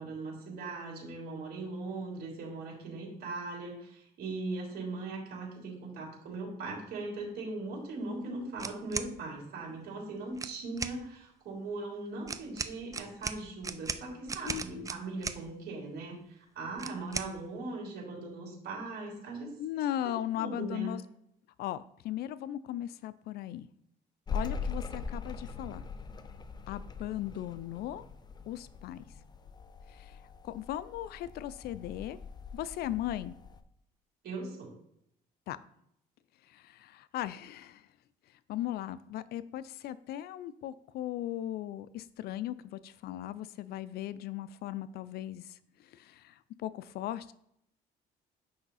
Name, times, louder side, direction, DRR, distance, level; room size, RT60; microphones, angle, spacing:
voice 1, 0.0-19.5 20.0-20.9 34.2-34.7, right 3 dB, 65° right, -1 dB, 3.4 m, -39 dB
sound 1, 8.6-9.1 10.3-11.0 12.3-15.4 16.8-17.3, right 4 dB, 20° right, 0.5 m, -37 dB
voice 2, 14.4-14.9 19.6-21.0 21.6-23.7 24.3-25.9 26.7-28.0 28.5-29.0 29.9-30.2 30.4-32.2 32.5-33.4 35.5-35.6 36.5-37.8 38.5-47.3, left 12 dB, 70° left, 15 dB, 0.4 m, -38 dB
sound 2, 24.3-33.6, left 5 dB, 25° left, 0.6 m, -41 dB
8.5 x 5.5 x 4.1 m, 0.75 s
cardioid pair, 110°, 17 cm